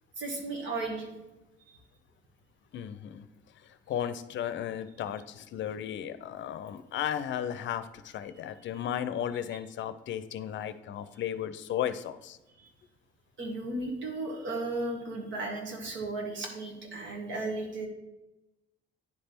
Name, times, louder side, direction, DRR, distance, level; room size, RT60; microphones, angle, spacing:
voice 1, 0.2-1.1 1.7-1.8 12.6-12.7 13.4-17.9, right 2 dB, 70° right, 2 dB, 1.7 m, -35 dB
voice 2, 2.7-3.3 3.6-12.4, left 10 dB, 70° left, 12 dB, 0.5 m, -35 dB
9.8 x 3.3 x 4.4 m, 1.0 s
cardioid pair, 90°, 20 cm